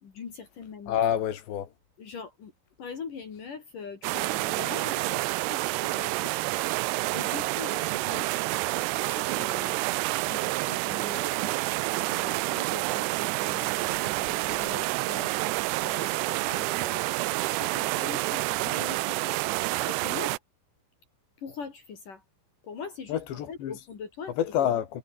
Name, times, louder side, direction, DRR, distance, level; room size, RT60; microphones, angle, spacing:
voice 1, 0.0-1.0 2.0-2.5 2.8-6.4 7.1-8.3 8.9-9.8 10.3-11.6 12.1-15.3 15.8-17.1 17.4-19.4 19.9-20.4 21.4-22.2 22.6-24.7, left 6 dB, 50° left, 4.4 m, -42 dB
voice 2, 0.9-1.7 23.1-23.7 24.4-25.0, left 10 dB, 75° left, 4.5 m, -27 dB
sound 1, 4.0-20.4, right 22 dB, 80° right, 2.5 m, -28 dB
omnidirectional pair, 5.1 m